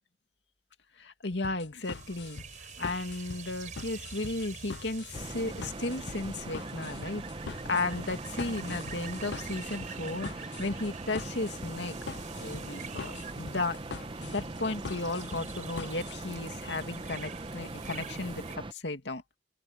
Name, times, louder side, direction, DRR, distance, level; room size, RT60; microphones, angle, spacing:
voice 1, 1.0-12.0 12.4-13.8 14.2-19.2, left 2 dB, 90° left, 2.3 m, -35 dB
sound 1, 1.4-16.2, left 4 dB, 75° left, 0.6 m, -43 dB
sound 2, 1.8-18.6, right 6 dB, 50° right, 4.5 m, -47 dB
sound 3, 5.1-18.7, right 2 dB, 30° right, 1.0 m, -41 dB
open air
head